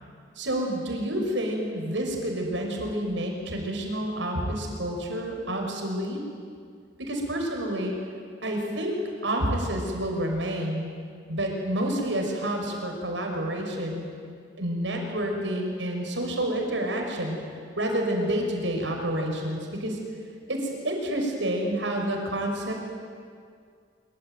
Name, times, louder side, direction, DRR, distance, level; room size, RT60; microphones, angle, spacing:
voice 1, 0.4-6.2 7.0-7.9 8.4-10.9 11.3-14.1 14.6-17.4 17.8-20.0 20.5-22.7, right 1 dB, 90° right, 2 dB, 6.3 m, -29 dB
25.5 x 25.0 x 9.4 m, 2.2 s
head